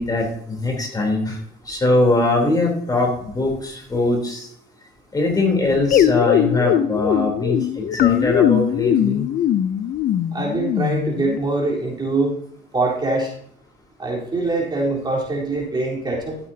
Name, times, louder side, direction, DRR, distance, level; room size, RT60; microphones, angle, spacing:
voice 1, 0.0-1.4 1.7-4.5 5.1-9.2, left 2 dB, 20° left, 1 dB, 3.4 m, -21 dB
sound 1, 5.9-11.4, left 10 dB, 60° left, 0.6 m, -20 dB
voice 2, 10.3-12.4 12.7-13.3 14.0-16.4, right 2 dB, 25° right, -3 dB, 3.8 m, -23 dB
13.5 x 8.4 x 2.8 m, 0.65 s
cardioid pair, 110°, 17 cm